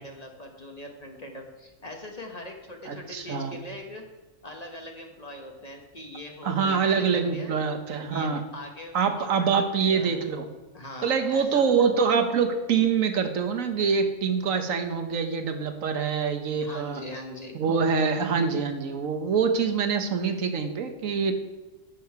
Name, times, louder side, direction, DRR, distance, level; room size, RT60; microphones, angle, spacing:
voice 1, 0.0-4.0 4.4-7.1 7.3-7.5 8.1-9.5 9.8-10.1 10.7-11.9 16.6-17.6, left 1 dB, 30° left, 2 dB, 1.0 m, -41 dB
voice 2, 2.9-3.6 6.4-8.4 8.9-10.4 11.0-17.0 17.5-21.3, right 6 dB, 75° right, 7 dB, 1.3 m, -25 dB
11.0 x 6.8 x 4.7 m, 1.1 s
omnidirectional pair, 1.4 m